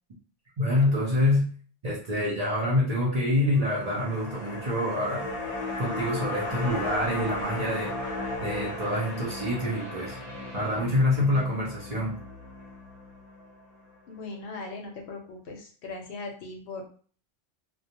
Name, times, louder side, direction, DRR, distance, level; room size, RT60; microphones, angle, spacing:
voice 1, 0.6-1.5 1.8-5.2 5.8-7.9 8.4-10.2 10.5-12.2, left 1 dB, 40° right, -5 dB, 0.6 m, -26 dB
cinema transient atmosph, 3.5-13.9 14.2-14.3, left 2 dB, 30° left, 0.7 m, -36 dB
voice 2, 14.1-16.9, left 3 dB, 65° left, 1 dB, 0.8 m, -39 dB
2.3 x 2.1 x 2.8 m, 0.43 s
omnidirectional pair, 1.2 m